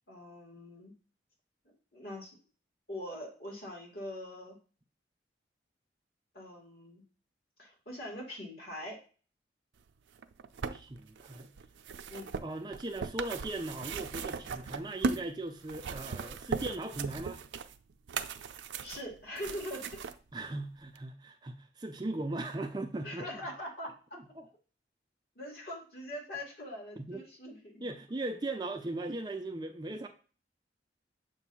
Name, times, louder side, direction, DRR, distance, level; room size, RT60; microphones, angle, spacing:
voice 1, 0.1-0.9 1.9-2.4 2.9-4.6 6.3-7.0 7.6-9.0 12.1-12.4 18.8-19.9 23.0-23.9 25.4-27.9, left 1 dB, 55° left, -2 dB, 2.4 m, -42 dB
sound 1, 10.1-15.3 15.6-20.2 21.0-21.1, right 5 dB, 90° right, 0.5 m, -38 dB
voice 2, 10.7-11.5 12.4-17.4 20.3-23.2 24.1-24.5 27.0-27.2 27.8-30.1, right 2 dB, 25° right, 6 dB, 0.4 m, -38 dB
7.0 x 2.7 x 5.5 m, 0.38 s
head